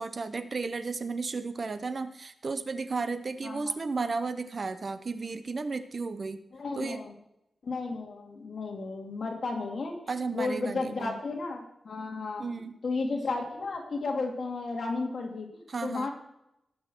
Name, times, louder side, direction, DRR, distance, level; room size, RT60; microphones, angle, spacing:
voice 1, 0.0-6.4 6.7-7.0 10.1-11.2 12.4-12.8 15.7-16.1, right 4 dB, 40° right, 11 dB, 0.6 m, -33 dB
voice 2, 3.4-3.7 6.5-7.2 7.6-10.0 10.3-12.4 12.8-16.1, left 3 dB, 55° left, 1 dB, 2.4 m, -33 dB
18.5 x 6.4 x 4.5 m, 0.82 s
wide cardioid pair, 180°, 0 cm